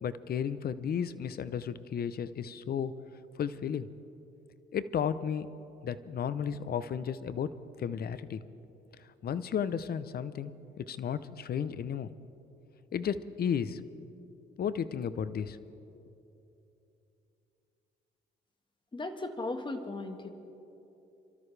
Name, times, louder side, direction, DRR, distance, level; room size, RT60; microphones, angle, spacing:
voice 1, 0.0-2.9 3.4-3.9 4.7-5.5 5.8-7.5 7.8-8.4 9.2-10.5 10.8-12.1 12.9-13.8 14.6-15.6, left 8 dB, 50° left, 14 dB, 0.7 m, -33 dB
voice 2, 18.9-20.3, left 2 dB, 25° left, 6 dB, 1.5 m, -36 dB
27.5 x 13.0 x 3.3 m, 2.9 s
cardioid pair, 90°, 20 cm